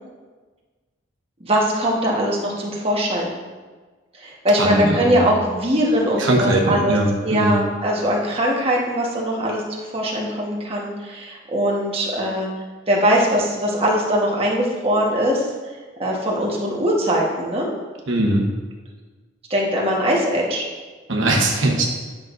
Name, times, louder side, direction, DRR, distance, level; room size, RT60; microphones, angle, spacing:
voice 1, 1.4-3.3 4.2-7.0 7.2-12.5 12.9-15.5 16.0-17.7 19.5-20.6, equal, 30° right, -3 dB, 1.3 m, -21 dB
voice 2, 4.6-5.3 6.2-7.6 18.1-18.5 21.1-21.9, right 1 dB, 75° right, 0 dB, 1.1 m, -20 dB
10.0 x 6.2 x 2.6 m, 1.4 s
head